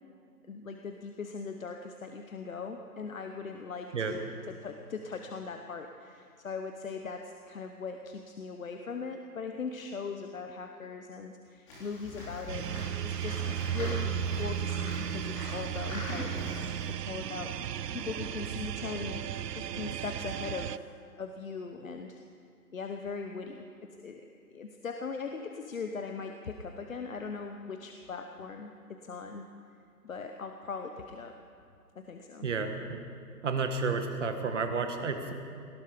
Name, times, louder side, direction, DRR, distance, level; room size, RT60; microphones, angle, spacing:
voice 1, 0.5-19.2 19.5-20.9 21.2-22.2 22.7-24.2 24.5-29.5 30.0-31.4 31.9-32.5, left 5 dB, 55° left, 5 dB, 1.0 m, -40 dB
sound 1, 11.7-16.9, left 1 dB, 20° left, 3.5 m, -42 dB
sound 2, 12.5-20.8, right 10 dB, 80° right, 0.6 m, -35 dB
voice 2, 32.4-33.0 33.4-35.3, right 4 dB, 50° right, 6 dB, 1.6 m, -31 dB
18.0 x 13.5 x 5.1 m, 2.5 s
hypercardioid pair, 165°, 47 cm